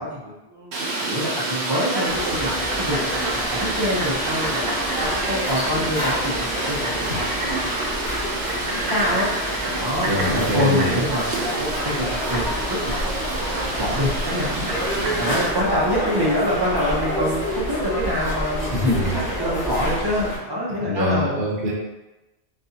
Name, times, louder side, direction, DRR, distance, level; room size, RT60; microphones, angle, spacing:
voice 1, 0.0-4.6 5.0-9.3 9.7-13.2 13.6-21.4, equal, 35° right, -6 dB, 0.4 m, -26 dB
Fowl, 0.7-15.5, right 2 dB, 75° right, 1.0 m, -27 dB
sound 1, 2.1-20.4, equal, 70° left, 1.4 m, -28 dB
voice 2, 10.0-11.1 18.7-19.2 20.8-21.7, left 1 dB, 55° right, -3 dB, 0.9 m, -23 dB
4.1 x 2.3 x 2.7 m, 1.0 s
omnidirectional pair, 1.1 m